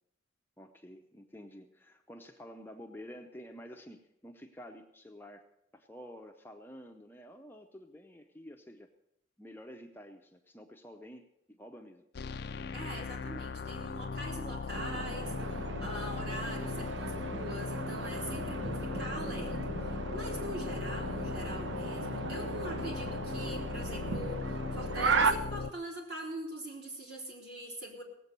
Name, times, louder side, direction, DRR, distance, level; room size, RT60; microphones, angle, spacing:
voice 1, 0.6-5.5 5.7-8.9 9.4-12.0, equal, 10° left, 4 dB, 0.6 m, -50 dB
sound 1, 12.1-25.7, left 4 dB, 55° left, 0.4 m, -38 dB
voice 2, 12.7-28.0, right 1 dB, 55° right, -1 dB, 3.5 m, -43 dB
sound 2, 14.7-25.3, right 4 dB, 70° right, 0.7 m, -36 dB
18.0 x 8.0 x 6.7 m, 0.81 s
head